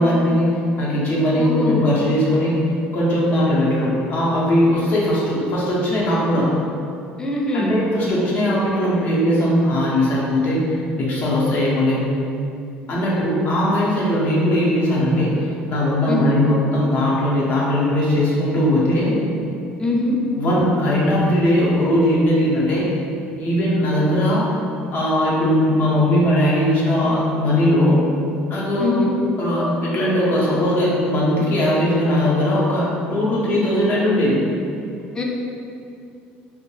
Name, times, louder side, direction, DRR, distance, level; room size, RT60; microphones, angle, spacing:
voice 1, 0.0-2.6 2.9-6.5 7.5-12.1 12.9-19.2 20.3-22.9 23.4-24.5 24.9-28.0 28.5-29.0 29.4-34.4, left 1 dB, 50° left, -6 dB, 0.7 m, -19 dB
voice 2, 1.4-1.8 7.2-7.8 16.1-16.4 19.8-20.2 28.8-29.1 35.1-35.2, left 1 dB, 20° left, -1 dB, 0.4 m, -22 dB
2.3 x 2.1 x 3.0 m, 2.5 s
cardioid pair, 115°, 4 cm